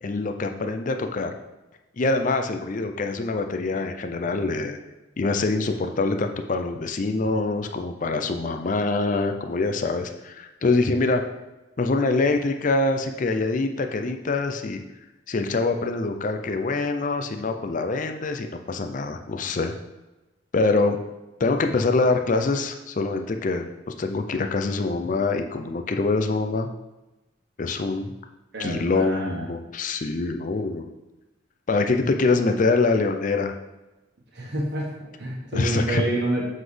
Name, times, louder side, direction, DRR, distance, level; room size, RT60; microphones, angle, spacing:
voice 1, 0.0-1.3 2.0-4.8 5.2-11.2 11.8-14.8 15.3-19.7 20.5-21.0 21.4-26.7 27.6-28.1 28.6-30.9 31.7-33.6 35.5-36.0, left 3 dB, 40° left, 6 dB, 0.5 m, -24 dB
voice 2, 28.5-29.5 34.3-36.4, right 1 dB, 55° right, -2 dB, 1.2 m, -29 dB
7.3 x 3.9 x 3.2 m, 1.0 s
head